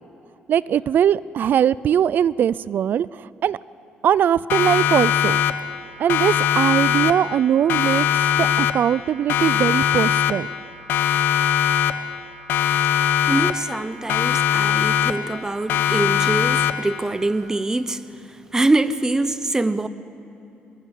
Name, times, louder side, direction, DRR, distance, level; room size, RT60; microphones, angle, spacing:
voice 1, 0.5-3.6 4.0-5.4 6.0-8.1 8.4-10.5, right 9 dB, 60° right, 0.5 m, -20 dB
Siren, 4.5-5.8 6.1-7.4 7.7-9.0 9.3-10.6 10.9-12.2 12.5-13.8 14.1-15.4 15.7-17.0, left 10 dB, 80° left, 0.9 m, -21 dB
voice 2, 13.3-18.0 18.5-19.9, right 2 dB, 15° right, 1.0 m, -24 dB
22.0 x 21.0 x 8.5 m
cardioid pair, 95°, 4 cm